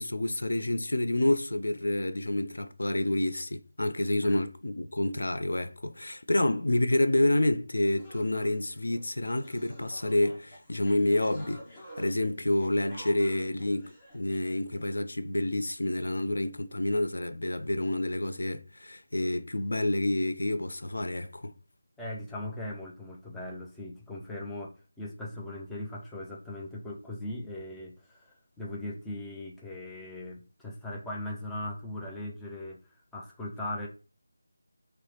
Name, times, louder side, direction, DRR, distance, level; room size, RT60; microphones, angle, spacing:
voice 1, 0.0-11.6 12.0-21.5, left 1 dB, 85° left, 0.4 m, -28 dB
sound 1, 7.8-14.9, right 1 dB, 20° left, 1.3 m, -51 dB
voice 2, 22.0-32.8 33.1-33.9, left 1 dB, 5° left, 0.3 m, -39 dB
4.8 x 2.0 x 2.8 m
figure-of-eight pair, 175°, 0 cm